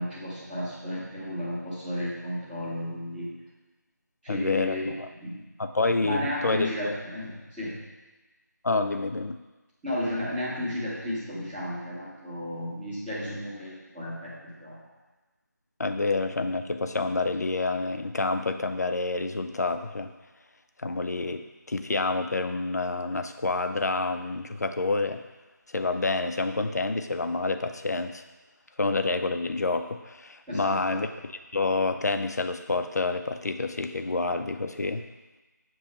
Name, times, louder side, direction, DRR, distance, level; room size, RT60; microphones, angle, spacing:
voice 1, 0.0-3.4 4.2-4.9 5.2-5.4 6.0-7.8 9.8-14.9 30.5-31.0, left 1 dB, 5° right, -18 dB, 0.7 m, -33 dB
voice 2, 4.3-5.1 5.6-6.9 8.6-9.4 15.8-20.1 20.8-25.2 25.7-28.2 28.8-35.0, left 3 dB, 60° left, 8 dB, 0.5 m, -28 dB
7.5 x 3.1 x 5.4 m, 1.2 s
figure-of-eight pair, 170°, 10 cm